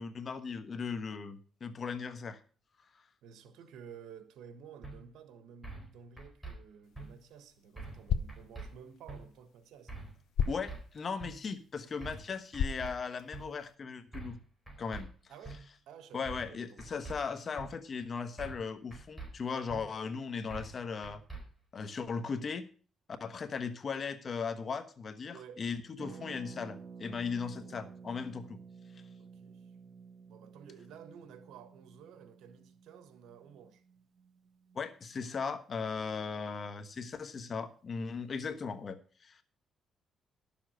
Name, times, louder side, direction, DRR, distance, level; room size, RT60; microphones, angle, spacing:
voice 1, 0.0-2.4 10.5-14.4 14.8-15.1 16.1-21.2 21.7-22.7 23.2-28.6 34.7-39.4, left 5 dB, 45° left, 1.3 m, -38 dB
voice 2, 3.2-10.1 15.3-16.9 25.2-25.6 26.0-26.2 27.3-27.8 29.2-29.7 30.3-33.8, right 7 dB, 80° right, 1.4 m, -53 dB
sound 1, 4.8-5.0 5.6-5.9 6.2-6.5 6.9-7.1 7.8-8.0 8.3-8.7 9.1-9.2 9.9-10.2 10.4-10.8 11.2-11.3 12.0-12.3 12.5-12.9 13.3-13.4 14.1-14.4 14.7-15.0 15.4-15.6 16.3-16.5 16.8-17.2 17.6-17.7 18.4-18.6 18.9-19.3 19.7-19.8 20.5-20.8 21.0-21.4, right 3 dB, 5° right, 4.6 m, -44 dB
sound 2, 6.8-13.7, left 7 dB, 75° left, 0.7 m, -39 dB
Harp, 26.0-35.6 35.9-36.0 36.1-36.4, right 5 dB, 60° right, 1.0 m, -52 dB
11.0 x 7.2 x 6.4 m
cardioid pair, 90°, 0 cm